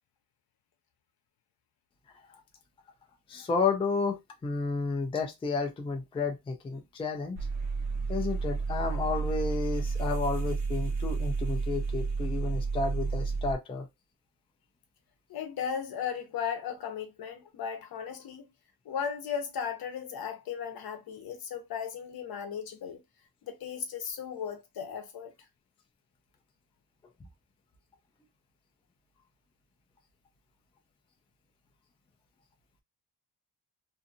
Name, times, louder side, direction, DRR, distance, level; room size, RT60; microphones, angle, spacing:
voice 1, 3.3-7.4 8.1-13.9, left 4 dB, 15° left, 0.3 m, -31 dB
sound 1, 7.4-13.5, right 4 dB, 45° right, 0.7 m, -31 dB
voice 2, 15.3-18.5 18.8-23.0 23.5-25.3, left 7 dB, 70° left, 0.8 m, -36 dB
2.6 x 2.5 x 2.6 m
wide cardioid pair, 175°, 38 cm